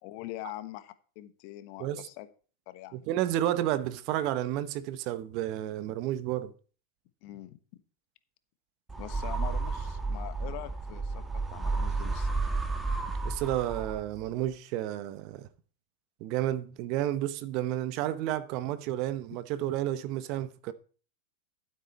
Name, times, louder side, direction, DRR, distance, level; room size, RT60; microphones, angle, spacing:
voice 1, 0.0-2.3 2.7-3.1 7.2-7.8 9.0-12.3, left 15 dB, 55° left, 1.2 m, -43 dB
voice 2, 2.9-6.5 13.2-15.5 16.2-20.7, right 13 dB, 50° right, 0.9 m, -31 dB
sound 1, 8.9-14.2, right 3 dB, 15° right, 1.4 m, -32 dB
12.5 x 8.0 x 4.2 m
hypercardioid pair, 120°, 0 cm